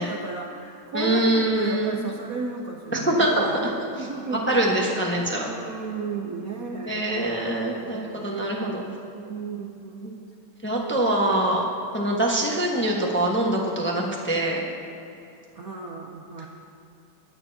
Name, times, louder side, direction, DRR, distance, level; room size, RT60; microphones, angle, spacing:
voice 1, 0.0-3.7 4.0-4.9 5.2-7.0 7.7-10.2 15.5-16.5, right 4 dB, 60° right, 0 dB, 1.0 m, -34 dB
voice 2, 0.9-2.0 2.9-3.5 4.0-5.5 6.9-8.8 10.0-10.1 10.6-11.7 11.9-14.6 16.4-16.5, right 1 dB, 5° left, -2 dB, 1.0 m, -24 dB
21.5 x 9.3 x 2.9 m, 2.7 s
omnidirectional pair, 2.3 m